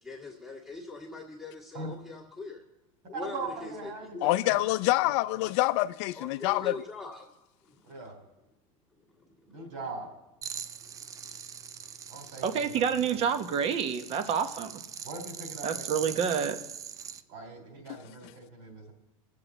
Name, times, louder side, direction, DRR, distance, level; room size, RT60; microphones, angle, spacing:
voice 1, 0.0-2.6 3.1-4.3 6.1-7.3 7.6-7.8 9.1-9.5 10.8-10.9, left 3 dB, ahead, 1.8 m, -42 dB
voice 2, 3.2-4.6 5.0-5.5 7.8-8.2 9.5-10.1 12.1-13.2 15.0-16.1 17.3-18.9, right 2 dB, 60° right, 3.3 m, -41 dB
voice 3, 4.2-6.7, left 18 dB, 55° left, 0.5 m, -26 dB
sound 1, 10.4-17.2, right 7 dB, 20° right, 0.4 m, -42 dB
voice 4, 12.4-14.8 15.6-16.6, right 7 dB, 35° right, 0.9 m, -28 dB
19.5 x 7.6 x 4.0 m
supercardioid pair, 135°, 18 cm